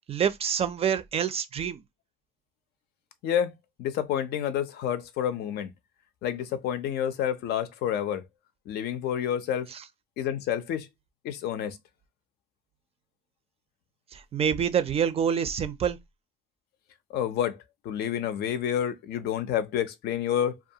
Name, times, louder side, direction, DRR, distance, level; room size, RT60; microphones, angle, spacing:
voice 1, 0.1-1.8 9.7-9.8 14.1-16.0, right 8 dB, 35° right, 0.4 m, -27 dB
voice 2, 3.2-3.5 3.8-5.7 6.2-8.2 8.7-9.7 10.2-10.9 11.2-11.8 17.1-20.6, left 9 dB, 70° left, 0.5 m, -29 dB
2.4 x 2.3 x 2.7 m
cardioid pair, 110°, 17 cm